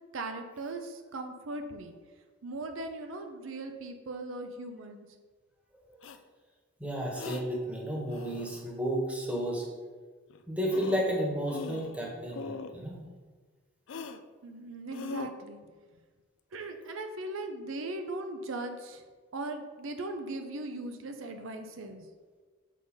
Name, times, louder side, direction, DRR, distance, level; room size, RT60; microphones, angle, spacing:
voice 1, 0.1-1.9 2.4-5.1 12.2-12.3 14.4-15.6 16.5-19.1 19.3-22.1, right 2 dB, 75° right, 6 dB, 0.6 m, -39 dB
sound 1, 6.0-6.2 7.1-7.4 8.1-8.6 10.3-10.4 10.7-11.1 11.5-12.0 12.3-12.7 13.9-14.2 14.9-15.3, left 4 dB, 70° left, 0.4 m, -40 dB
voice 2, 6.8-9.7 10.5-13.0, equal, 5° right, -3 dB, 1.3 m, -32 dB
7.4 x 4.0 x 5.3 m, 1.4 s
head